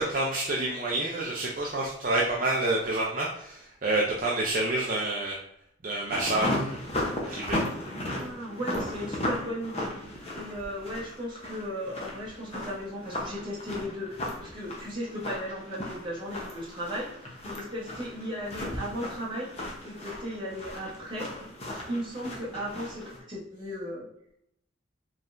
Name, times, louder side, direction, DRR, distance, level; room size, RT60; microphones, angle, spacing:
voice 1, 0.0-5.4 5.8-6.7 7.3-7.6, right 2 dB, 45° right, -3 dB, 0.5 m, -28 dB
sound 1, 6.1-23.2, left 1 dB, 30° left, 0.8 m, -36 dB
voice 2, 7.9-19.5 19.8-24.1, equal, 25° right, -6 dB, 1.2 m, -36 dB
4.6 x 3.2 x 2.6 m, 0.74 s
head